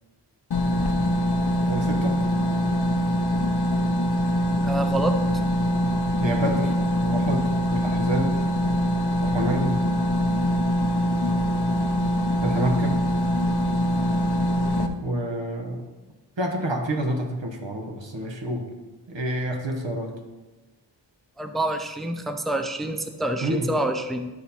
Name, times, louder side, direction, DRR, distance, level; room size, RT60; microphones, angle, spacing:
sound 1, 0.5-14.9, equal, 65° left, 0.7 m, -23 dB
voice 1, 1.7-2.2 6.2-6.8 7.0-8.4 9.2-9.8 12.4-13.0 15.0-15.8 16.4-18.7 19.1-20.1 23.4-23.7, right 1 dB, 85° right, 2 dB, 1.3 m, -28 dB
voice 2, 4.6-5.2 21.4-24.3, right 1 dB, ahead, 6 dB, 0.5 m, -27 dB
11.5 x 4.1 x 4.2 m, 1.2 s
wide cardioid pair, 70°, 43 cm